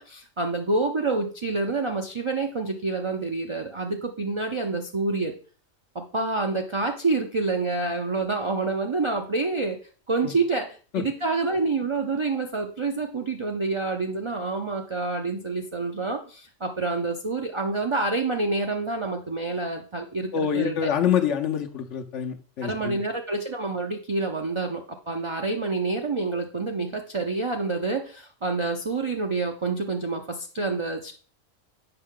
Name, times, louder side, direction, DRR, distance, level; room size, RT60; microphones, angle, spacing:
voice 1, 0.0-5.3 5.9-9.8 10.1-20.9 22.6-31.1, right 3 dB, 35° right, 3 dB, 0.5 m, -27 dB
voice 2, 20.3-23.0, left 8 dB, 70° left, 4 dB, 1.1 m, -26 dB
7.8 x 5.5 x 3.7 m, 0.39 s
omnidirectional pair, 1.3 m